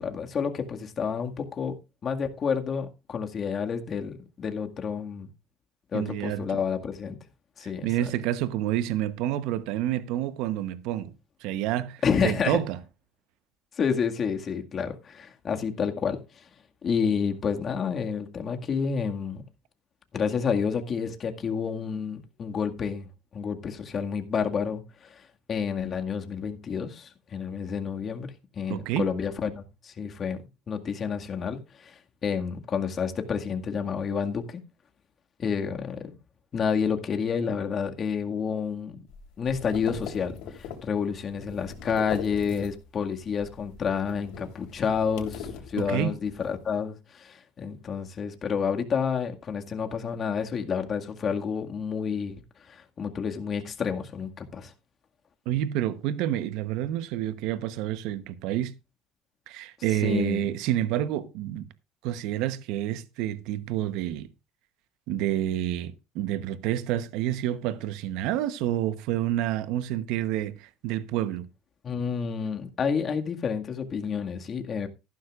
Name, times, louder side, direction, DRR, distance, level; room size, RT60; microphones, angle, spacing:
voice 1, 0.0-1.8 2.0-5.3 5.9-7.2 7.6-8.1 12.0-12.6 13.8-16.5 16.8-19.4 20.1-25.2 25.5-34.6 35.4-36.2 36.5-39.0 39.4-54.7 60.0-60.5 71.8-74.9, left 6 dB, 40° left, 2.0 m, -29 dB
voice 2, 5.9-6.6 7.8-11.1 11.4-12.8 28.7-29.1 45.8-46.1 55.5-58.7 59.5-61.7 62.0-64.3 65.1-71.5, right 12 dB, 75° right, 1.0 m, -29 dB
sound 1, 39.1-43.0 43.3-46.4, left 7 dB, 75° left, 3.5 m, -40 dB
14.5 x 12.0 x 2.5 m
supercardioid pair, 85°, 0 cm